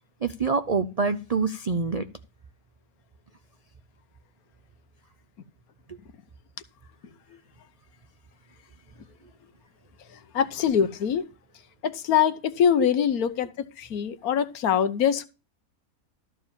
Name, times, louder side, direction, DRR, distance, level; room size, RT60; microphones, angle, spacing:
voice 1, 0.2-2.0 5.9-6.0, right 4 dB, 80° right, 0.3 m, -26 dB
voice 2, 10.3-11.2 11.8-13.5 13.8-15.3, left 8 dB, 75° left, 1.3 m, -23 dB
13.0 x 4.6 x 7.2 m
omnidirectional pair, 1.6 m